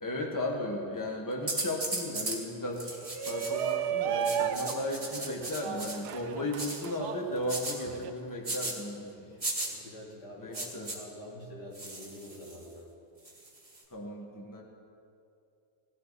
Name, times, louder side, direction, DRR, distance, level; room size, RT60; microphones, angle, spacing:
voice 1, 0.0-9.4 10.4-10.9 13.9-14.6, left 1 dB, 10° left, 0 dB, 1.5 m, -35 dB
sound 1, 1.5-2.4 2.8-3.7 4.2-6.0 6.6-6.8 7.5-7.8 8.4-8.7 9.4-9.7 10.5-11.0 11.7-12.6 13.2-13.8, right 2 dB, 20° right, 2.1 m, -36 dB
Shout, 3.0-8.1, right 9 dB, 80° right, 1.2 m, -34 dB
voice 2, 9.1-12.9, left 1 dB, 75° left, -4 dB, 3.3 m, -47 dB
18.5 x 16.0 x 4.2 m, 2.5 s
omnidirectional pair, 1.7 m